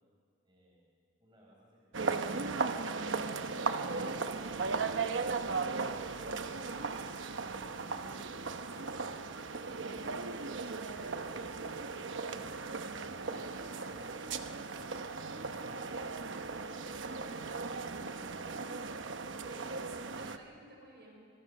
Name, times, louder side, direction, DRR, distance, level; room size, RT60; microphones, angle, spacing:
voice 1, 0.4-0.9 19.4-19.8, equal, 25° right, -4 dB, 4.6 m, -61 dB
sound 1, 1.9-20.4, right 4 dB, 75° right, 1.0 m, -37 dB
voice 2, 13.2-13.9 19.5-19.8 20.1-21.3, right 1 dB, 55° right, 0 dB, 5.8 m, -56 dB
27.0 x 22.5 x 6.7 m, 2.2 s
head